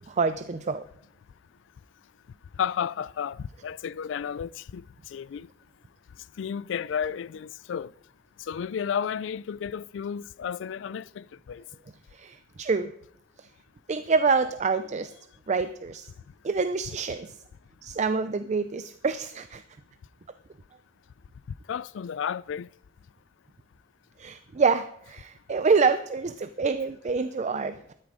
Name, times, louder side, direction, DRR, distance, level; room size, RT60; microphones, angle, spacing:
voice 1, 0.1-0.8 12.1-12.9 13.4-13.5 13.9-15.1 15.5-16.1 16.4-17.4 17.8-19.6 24.2-27.9, right 4 dB, 40° right, 0.4 m, -26 dB
voice 2, 2.6-4.8 5.1-5.5 6.4-7.9 8.5-11.6 21.7-22.7, left 7 dB, 80° left, 0.3 m, -32 dB
12.5 x 9.5 x 5.0 m
head